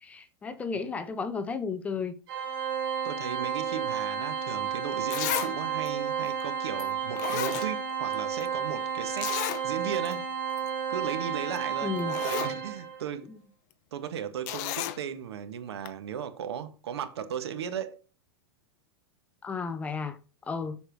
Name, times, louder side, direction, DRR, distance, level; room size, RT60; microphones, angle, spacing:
voice 1, 0.0-2.2 11.8-12.1 13.3-13.4 19.4-20.2 20.5-20.8, left 5 dB, 10° left, 0.6 m, -33 dB
Organ, 2.3-13.0, right 7 dB, 55° right, 2.6 m, -32 dB
voice 2, 3.0-9.4 9.6-10.3 10.9-12.0 12.2-13.3 13.9-18.0, right 8 dB, 80° right, 1.8 m, -36 dB
Zipper (clothing), 4.6-4.7 5.1-5.5 5.9-6.0 6.8-6.9 7.2-8.1 8.4-8.5 9.2-9.6 10.1-10.2 10.5-10.7 11.6-11.7 12.0-12.5 14.5-15.0 15.9-16.0, left 14 dB, 40° left, 0.9 m, -32 dB
8.0 x 6.9 x 6.2 m
supercardioid pair, 165°, 13 cm